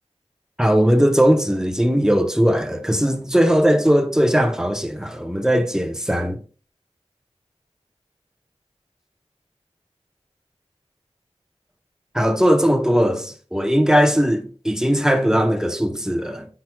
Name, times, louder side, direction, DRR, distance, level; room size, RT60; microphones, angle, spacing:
voice 1, 0.6-6.4 12.1-16.5, equal, 5° right, 0.9 m, -19 dB
8.4 x 6.0 x 2.3 m
wide cardioid pair, 45°, 11 cm